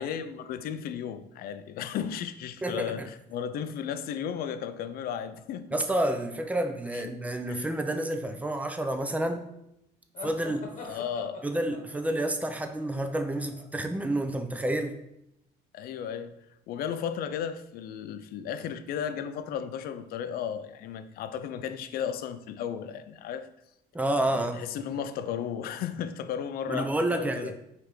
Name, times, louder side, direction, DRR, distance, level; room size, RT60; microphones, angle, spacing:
voice 1, 0.0-5.7 6.9-7.2 7.5-7.7 10.8-11.4 15.7-16.3 16.7-23.5 24.2-27.5, left 8 dB, 65° left, 0.4 m, -34 dB
voice 2, 2.6-3.1 5.7-9.4 10.2-11.0 11.4-15.0 23.9-24.6 26.7-27.5, right 1 dB, 10° right, 0.4 m, -29 dB
sound 1, 10.1-13.8, left 3 dB, 45° left, 1.1 m, -44 dB
4.6 x 3.3 x 3.1 m
cardioid pair, 110°, 17 cm